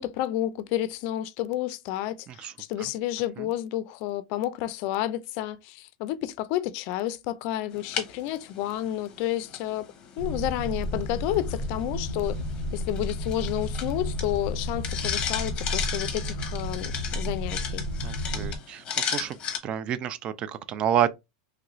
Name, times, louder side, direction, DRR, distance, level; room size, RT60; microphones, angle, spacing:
voice 1, 0.0-9.9 10.2-12.4 12.7-17.8, left 13 dB, 50° left, 0.4 m, -30 dB
sound 1, 7.7-19.6, left 7 dB, 30° left, 0.8 m, -36 dB
sound 2, 10.2-18.6, left 1 dB, 70° right, 0.9 m, -32 dB
voice 2, 18.0-19.4 19.6-21.1, right 10 dB, 30° right, 0.3 m, -29 dB
3.0 x 2.4 x 3.0 m
supercardioid pair, 145°, 3 cm